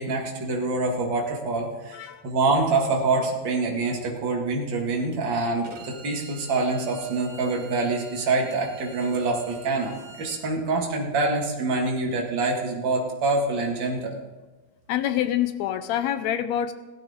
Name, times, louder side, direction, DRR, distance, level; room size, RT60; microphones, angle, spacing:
voice 1, 0.0-14.2, right 3 dB, 40° right, 0 dB, 2.4 m, -26 dB
Bowed string instrument, 5.6-10.4, right 4 dB, 80° right, 3.1 m, -47 dB
voice 2, 14.9-16.7, left 11 dB, 75° left, 11 dB, 1.8 m, -26 dB
16.0 x 12.0 x 3.7 m, 1.2 s
omnidirectional pair, 3.3 m